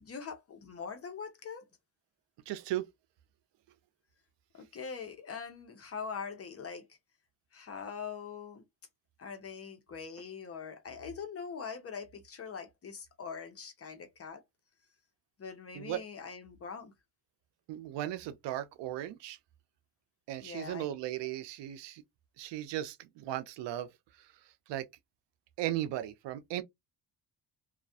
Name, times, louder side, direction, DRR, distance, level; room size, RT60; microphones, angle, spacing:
voice 1, 0.0-1.6 4.5-6.8 7.5-8.6 9.2-14.4 15.4-16.9 20.4-20.8, left 6 dB, 35° left, 0.7 m, -42 dB
voice 2, 2.5-2.9 15.7-16.0 17.7-19.4 20.3-22.0 22.4-23.9 24.7-24.9 25.6-26.6, right 13 dB, 75° right, 0.5 m, -36 dB
2.3 x 2.1 x 2.6 m
cardioid pair, 105°, 43 cm